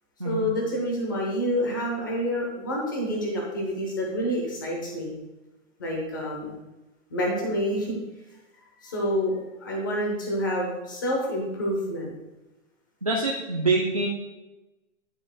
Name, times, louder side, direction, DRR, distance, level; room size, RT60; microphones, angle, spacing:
voice 1, 0.2-5.1 5.8-6.5 7.1-8.0 8.8-12.1, equal, 15° left, -1 dB, 0.7 m, -28 dB
voice 2, 13.0-14.1, right 3 dB, 30° right, -3 dB, 0.4 m, -25 dB
10.0 x 6.0 x 2.3 m, 1.0 s
hypercardioid pair, 180°, 38 cm